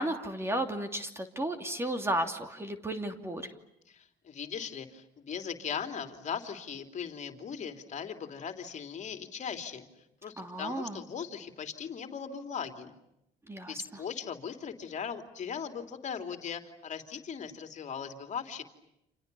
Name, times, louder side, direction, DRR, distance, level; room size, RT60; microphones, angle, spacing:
voice 1, 0.0-3.5 10.4-11.0 13.5-13.8, right 1 dB, 15° right, 7 dB, 2.8 m, -33 dB
voice 2, 3.9-9.9 10.2-12.9 13.7-18.6, left 7 dB, 45° left, 7 dB, 3.3 m, -39 dB
29.5 x 28.0 x 7.0 m, 0.81 s
cardioid pair, 110°, 17 cm